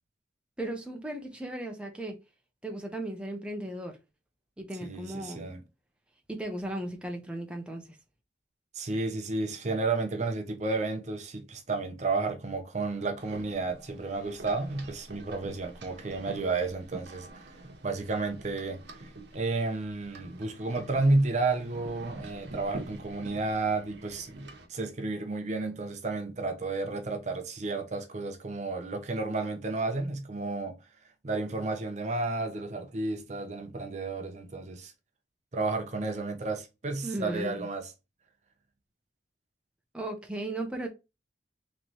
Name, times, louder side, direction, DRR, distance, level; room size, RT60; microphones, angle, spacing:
voice 1, 0.6-2.2 2.6-4.0 4.6-5.5 6.3-7.8 37.0-37.7 39.9-40.9, right 1 dB, 5° right, 0.7 m, -36 dB
voice 2, 4.8-5.6 8.7-17.4 17.8-30.7 31.2-34.9 35.5-37.9, right 3 dB, 40° right, 0.6 m, -32 dB
sound 1, 13.2-24.7, right 2 dB, 75° right, 0.9 m, -47 dB
3.9 x 3.1 x 2.9 m
head